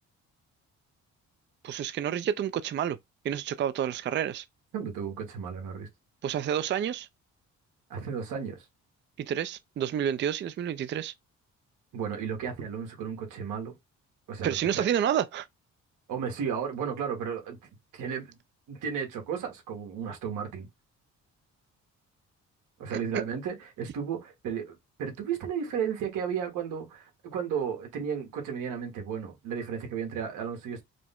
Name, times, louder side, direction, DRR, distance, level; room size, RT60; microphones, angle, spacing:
voice 1, 1.6-3.0 3.2-4.5 6.2-7.1 9.2-11.1 14.4-15.5 22.9-23.0, right 9 dB, 40° right, 0.4 m, -29 dB
voice 2, 4.7-5.9 7.9-8.7 11.9-13.7 14.3-14.9 16.1-17.6 17.9-18.3 18.7-20.7 22.8-30.8, right 7 dB, 90° right, 1.6 m, -34 dB
5.0 x 2.1 x 3.6 m
cardioid pair, 90°, 30 cm